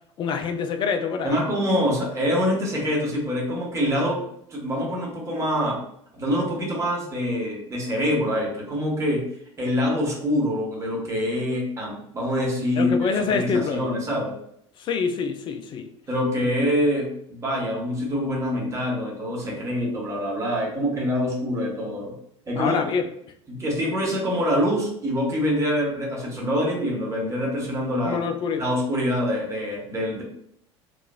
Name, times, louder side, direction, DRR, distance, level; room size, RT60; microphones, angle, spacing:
voice 1, 0.2-1.4 12.8-13.9 14.8-15.9 22.6-23.1 28.0-28.7, left 5 dB, 30° left, 7 dB, 0.4 m, -26 dB
voice 2, 1.2-4.2 4.5-5.8 6.1-9.2 9.6-12.9 13.3-14.3 16.1-22.1 22.5-22.8 23.5-28.2 28.6-30.2, equal, 20° right, -4 dB, 1.2 m, -25 dB
2.9 x 2.4 x 2.2 m, 0.72 s
figure-of-eight pair, 70°, 16 cm